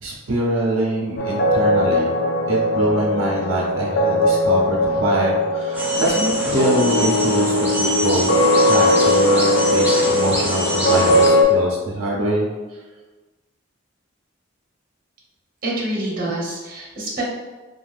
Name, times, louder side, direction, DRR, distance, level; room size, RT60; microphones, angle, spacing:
voice 1, 0.0-2.1 2.5-12.5, right 1 dB, 85° right, -2 dB, 0.5 m, -24 dB
sound 1, 1.2-11.4, left 1 dB, 55° left, 0.4 m, -19 dB
sound 2, 5.7-11.3, right 1 dB, 10° right, 0.4 m, -26 dB
voice 2, 15.6-17.2, right 1 dB, 45° right, -3 dB, 0.7 m, -26 dB
2.5 x 2.3 x 3.2 m, 1.2 s
head